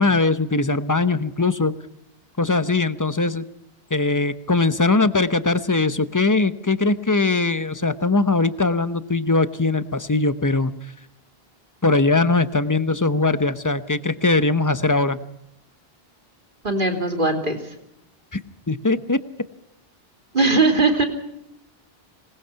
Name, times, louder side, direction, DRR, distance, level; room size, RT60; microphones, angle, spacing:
voice 1, 0.0-1.7 2.4-3.4 3.9-10.7 11.8-15.2 18.3-18.4 18.7-19.2, left 3 dB, 20° left, 12 dB, 0.9 m, -20 dB
voice 2, 16.6-17.6 20.3-21.0, right 3 dB, 55° right, 3 dB, 3.4 m, -19 dB
26.0 x 19.0 x 5.8 m, 0.81 s
omnidirectional pair, 1.0 m